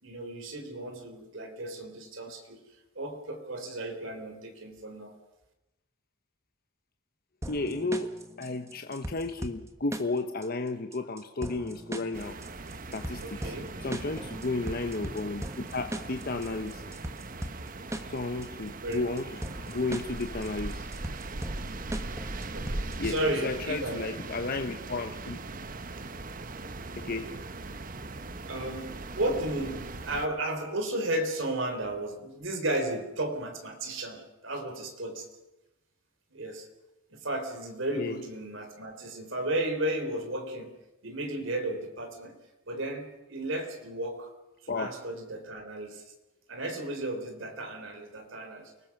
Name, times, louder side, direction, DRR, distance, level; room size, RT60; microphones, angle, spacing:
voice 1, 0.0-2.6 3.0-5.1 13.2-13.7 18.8-19.3 22.5-24.1 27.0-27.3 28.5-35.3 36.3-36.7 37.1-40.7 41.0-42.4 42.7-44.3 44.6-46.0 46.5-48.7, right 1 dB, 70° right, 5 dB, 3.8 m, -34 dB
sound 1, 7.4-23.4, right 1 dB, 15° right, 1.3 m, -40 dB
voice 2, 7.5-12.4 12.9-13.5 13.8-16.8 18.1-19.3 19.7-20.9 23.0-25.4 27.1-27.3 38.0-38.1 44.7-44.9, left 3 dB, 45° left, 7 dB, 1.0 m, -33 dB
sound 2, 12.1-30.3, right 2 dB, 40° right, 1.0 m, -40 dB
29.0 x 20.0 x 6.0 m, 0.99 s
head